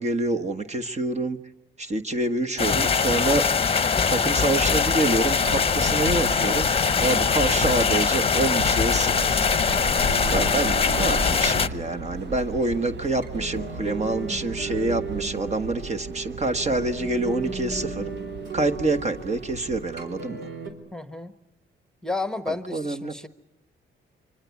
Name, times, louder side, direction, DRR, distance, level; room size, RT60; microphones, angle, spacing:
voice 1, 0.0-1.4 1.8-3.4 4.1-9.4 10.2-18.1 18.5-20.5 22.7-23.1, right 2 dB, 35° right, 6 dB, 1.4 m, -26 dB
sound 1, 2.6-11.7, left 5 dB, 30° left, 0.9 m, -22 dB
sound 2, 4.4-20.2, right 3 dB, 60° right, 1.5 m, -37 dB
sound 3, 9.1-20.7, right 4 dB, 75° right, 4.0 m, -37 dB
voice 2, 20.9-21.3 22.0-23.3, left 3 dB, 5° left, 11 dB, 1.3 m, -32 dB
26.0 x 24.0 x 8.3 m, 0.89 s
cardioid pair, 90°, 20 cm